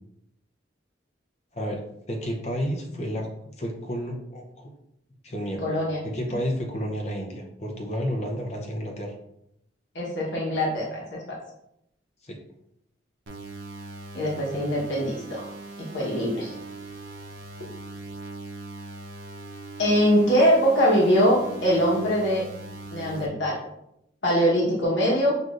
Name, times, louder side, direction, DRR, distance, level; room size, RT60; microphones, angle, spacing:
voice 1, 1.5-3.3 3.6-4.7 5.2-5.6 6.0-9.2 12.2-12.4, equal, 35° left, 1 dB, 0.6 m, -31 dB
voice 2, 5.6-6.0 9.9-11.4 14.1-15.5 15.8-16.5 19.8-22.4 22.9-23.6 24.2-25.3, equal, 70° left, -4 dB, 1.1 m, -22 dB
sound 1, 13.3-23.3, right 2 dB, 80° right, 0.7 m, -40 dB
6.1 x 2.6 x 2.4 m, 0.79 s
head